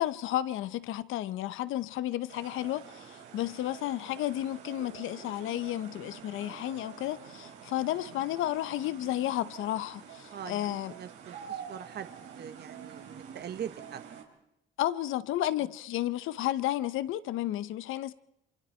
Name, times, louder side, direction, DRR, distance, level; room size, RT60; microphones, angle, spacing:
voice 1, 0.0-10.9 14.8-18.1, left 13 dB, 90° left, 0.9 m, -32 dB
sound 1, 2.3-14.2, right 8 dB, 85° right, 3.9 m, -47 dB
voice 2, 10.3-12.1 12.4-14.0, right 9 dB, 55° right, 1.0 m, -42 dB
27.5 x 24.5 x 4.4 m
cardioid pair, 90°, 20 cm